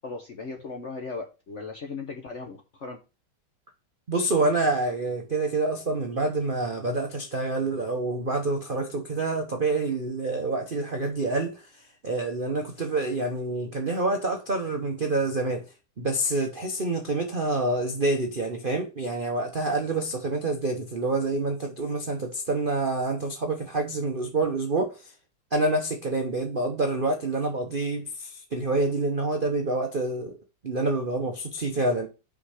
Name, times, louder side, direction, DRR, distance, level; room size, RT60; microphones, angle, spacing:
voice 1, 0.0-3.0, left 4 dB, 50° left, 0.9 m, -37 dB
voice 2, 4.1-15.7 16.0-25.1 25.5-30.4 30.6-32.1, right 2 dB, 50° right, 0.6 m, -27 dB
5.7 x 5.2 x 4.9 m
omnidirectional pair, 2.3 m